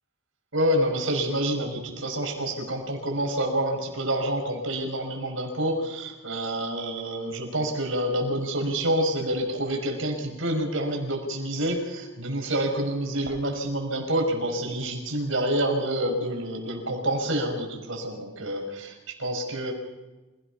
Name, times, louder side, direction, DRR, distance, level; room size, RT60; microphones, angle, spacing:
voice 1, 0.5-19.7, right 1 dB, 75° right, 2 dB, 5.7 m, -28 dB
27.5 x 17.5 x 5.8 m, 1.1 s
head